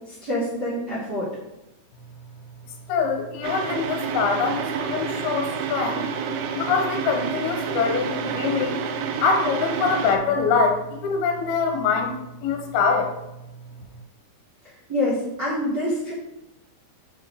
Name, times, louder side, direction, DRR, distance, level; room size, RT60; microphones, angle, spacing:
voice 1, 0.0-1.3 14.6-16.1, left 1 dB, 45° right, -10 dB, 1.4 m, -26 dB
voice 2, 2.9-6.0 6.5-8.8 9.2-12.1 12.4-13.1, left 5 dB, 75° left, 3 dB, 2.5 m, -24 dB
sound 1, 3.4-10.2, right 6 dB, 80° right, 2.4 m, -29 dB
6.1 x 4.7 x 3.3 m, 0.91 s
omnidirectional pair, 4.8 m